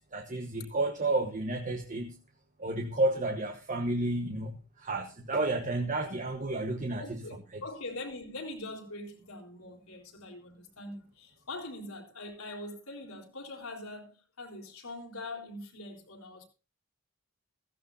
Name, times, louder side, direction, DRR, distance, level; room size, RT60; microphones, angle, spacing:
voice 1, 0.1-2.2 2.6-7.2 7.5-7.6, right 2 dB, 40° right, 1.2 m, -31 dB
voice 2, 7.0-16.4, left 2 dB, 80° left, 4.0 m, -43 dB
15.5 x 15.5 x 2.7 m
head